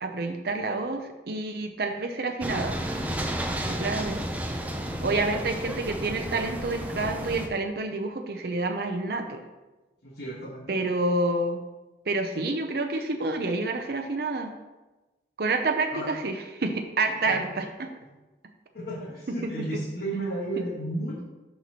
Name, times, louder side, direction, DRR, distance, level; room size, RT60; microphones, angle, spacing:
voice 1, 0.0-2.8 3.6-4.2 5.0-9.4 10.7-11.6 12.1-14.5 15.4-17.9, right 2 dB, 55° right, 4 dB, 0.6 m, -28 dB
sound 1, 2.4-7.5, equal, 10° right, 0.5 m, -32 dB
voice 2, 10.0-10.8 15.9-16.2 17.0-17.9 18.7-21.2, right 1 dB, 60° left, -6 dB, 1.4 m, -34 dB
12.0 x 4.1 x 2.9 m, 1.1 s
head